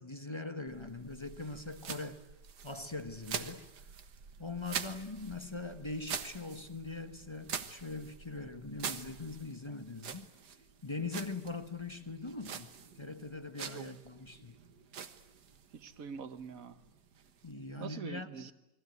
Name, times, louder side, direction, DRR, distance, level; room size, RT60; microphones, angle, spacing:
voice 1, 0.0-2.2 2.6-3.9 4.4-10.3 10.8-14.6 17.4-18.5, left 3 dB, 20° left, 0.9 m, -42 dB
sound 1, 0.7-17.9, right 7 dB, 75° right, 1.9 m, -46 dB
voice 2, 15.7-16.8 17.8-18.5, right 6 dB, 55° right, 1.6 m, -44 dB
29.0 x 20.5 x 9.4 m
omnidirectional pair, 1.8 m